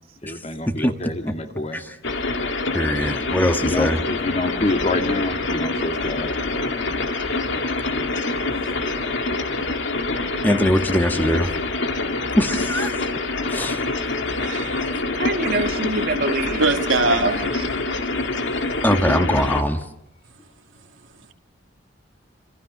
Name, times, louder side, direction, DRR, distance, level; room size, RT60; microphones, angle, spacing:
voice 1, 0.2-1.8 3.3-6.4, left 2 dB, 35° left, 2.3 m, -27 dB
sound 1, 2.0-19.6, left 2 dB, 65° left, 2.4 m, -25 dB
voice 2, 2.7-4.0 10.4-11.5 12.4-13.0 13.5-13.8 18.8-19.8, equal, 10° left, 1.5 m, -21 dB
voice 3, 8.7-9.4 15.2-16.6 17.0-17.6, right 3 dB, 50° right, 1.8 m, -27 dB
voice 4, 14.4-14.9 16.0-16.1 16.6-17.5, right 3 dB, 85° right, 2.5 m, -22 dB
28.0 x 27.5 x 6.6 m
head